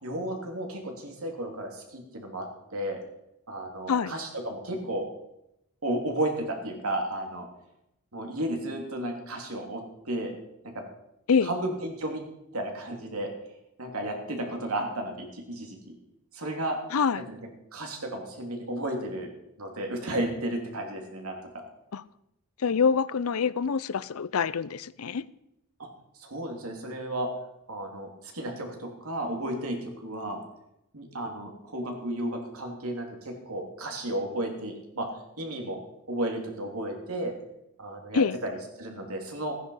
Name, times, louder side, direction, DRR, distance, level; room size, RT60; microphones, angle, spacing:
voice 1, 0.0-2.5 2.7-3.0 3.5-5.1 5.8-7.5 8.1-9.8 10.1-10.4 10.7-10.8 11.4-12.2 12.5-13.3 13.8-16.0 16.3-16.8 17.1-17.4 17.7-19.3 19.6-21.4 25.8-25.9 26.2-27.3 27.7-30.4 30.9-35.1 35.4-35.8 36.1-37.3 37.8-39.5, right 1 dB, 85° right, 3.0 m, -33 dB
voice 2, 16.9-17.2 21.9-22.0 22.6-25.2 38.1-38.4, left 6 dB, 75° left, 0.5 m, -25 dB
15.0 x 10.0 x 5.5 m
head